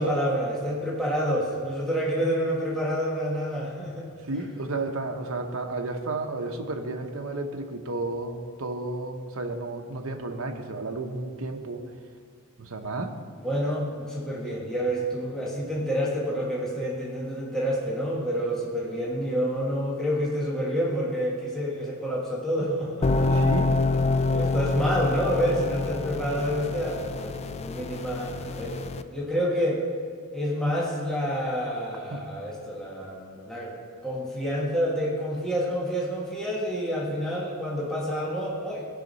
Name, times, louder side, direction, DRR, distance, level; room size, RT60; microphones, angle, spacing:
voice 1, 0.0-4.1 4.3-4.5 13.4-23.9 24.3-29.8 30.3-33.7 34.0-38.9, equal, 5° left, -5 dB, 1.3 m, -28 dB
voice 2, 4.3-11.8 12.6-13.1 23.3-23.7 32.1-32.2, right 2 dB, 70° right, 4 dB, 0.9 m, -32 dB
sound 1, 23.0-29.0, left 3 dB, 30° left, 0.3 m, -27 dB
15.5 x 5.8 x 4.1 m, 2.1 s
head